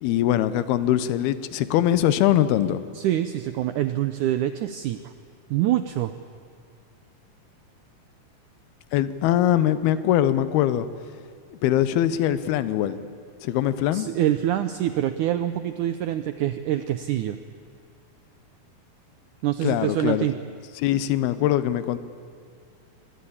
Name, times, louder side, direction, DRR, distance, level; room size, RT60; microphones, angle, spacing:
voice 1, 0.0-2.8 8.9-10.9 11.6-13.0 13.4-14.1 19.6-20.3 20.8-22.0, left 12 dB, 85° left, 14 dB, 2.9 m, -22 dB
voice 2, 2.9-5.1 5.5-6.1 13.9-17.4 19.4-20.3, right 12 dB, 80° right, 10 dB, 1.8 m, -25 dB
25.0 x 20.5 x 8.7 m, 2.2 s
omnidirectional pair, 4.4 m